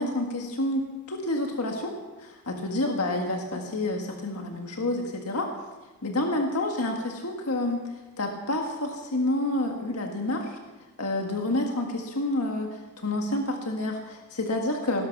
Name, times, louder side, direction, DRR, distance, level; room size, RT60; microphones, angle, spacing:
voice 1, 0.0-1.9 2.2-5.5 6.0-10.6 11.0-15.1, left 1 dB, 90° left, 2 dB, 1.8 m, -29 dB
17.5 x 12.5 x 5.9 m, 1.2 s
head